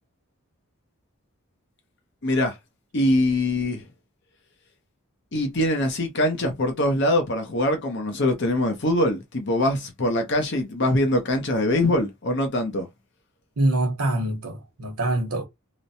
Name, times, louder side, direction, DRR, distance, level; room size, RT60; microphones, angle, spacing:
voice 1, 2.2-2.5 2.9-3.9 5.3-12.9, left 1 dB, 50° left, 0.7 m, -23 dB
voice 2, 13.6-15.4, right 1 dB, 80° right, 0.9 m, -24 dB
3.1 x 2.0 x 2.7 m
head